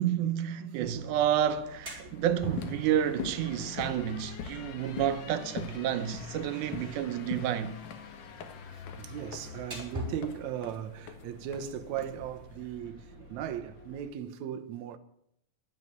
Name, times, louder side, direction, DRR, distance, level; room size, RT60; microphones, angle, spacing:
voice 1, 0.0-7.8, right 10 dB, 90° right, 2.4 m, -30 dB
sound 1, 0.8-14.1, left 5 dB, 55° left, 1.4 m, -48 dB
voice 2, 0.8-1.1 3.9-4.1 9.0-15.0, right 10 dB, 75° right, 2.1 m, -38 dB
sound 2, 1.5-12.8, right 1 dB, 20° right, 5.9 m, -47 dB
sound 3, 2.4-12.6, left 6 dB, 90° left, 2.9 m, -43 dB
12.0 x 8.9 x 9.2 m
omnidirectional pair, 3.5 m